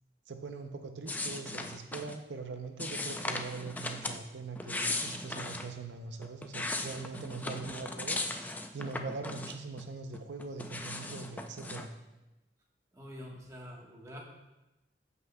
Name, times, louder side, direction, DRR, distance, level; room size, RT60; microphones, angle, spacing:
voice 1, 0.3-11.9, right 4 dB, 80° right, 6 dB, 0.6 m, -42 dB
sound 1, 1.1-2.2 2.8-4.2 4.5-5.7 6.2-9.8 10.1-11.9, left 2 dB, 10° left, 0.3 m, -37 dB
voice 2, 12.9-14.2, equal, 15° right, -2 dB, 1.2 m, -46 dB
14.0 x 5.6 x 2.2 m, 1.0 s
head